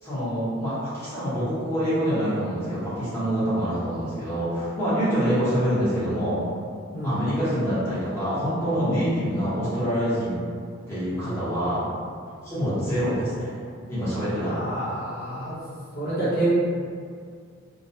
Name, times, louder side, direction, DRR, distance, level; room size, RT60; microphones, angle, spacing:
voice 1, 0.0-6.4 7.0-10.4 10.9-11.8 12.4-13.6 13.9-14.7, equal, 10° left, -13 dB, 0.9 m, -26 dB
voice 2, 14.5-15.6 15.9-16.5, right 1 dB, 50° left, -11 dB, 0.6 m, -28 dB
2.4 x 2.1 x 2.6 m, 2.2 s
head